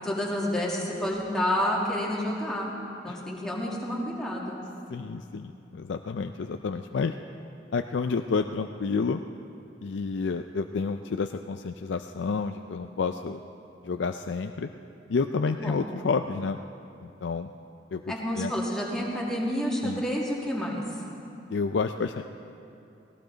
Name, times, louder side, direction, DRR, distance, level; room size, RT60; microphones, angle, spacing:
voice 1, 0.0-2.7 3.0-4.6 15.5-15.8 18.1-20.8, left 1 dB, 5° left, -4 dB, 2.3 m, -29 dB
voice 2, 4.9-7.2 7.7-9.2 9.8-13.4 13.8-14.7 15.1-16.6 17.0-17.5 17.9-18.0 18.3-18.5 19.8-20.0 21.5-22.2, left 4 dB, 85° left, 7 dB, 0.4 m, -29 dB
18.5 x 17.5 x 4.0 m, 2.7 s
head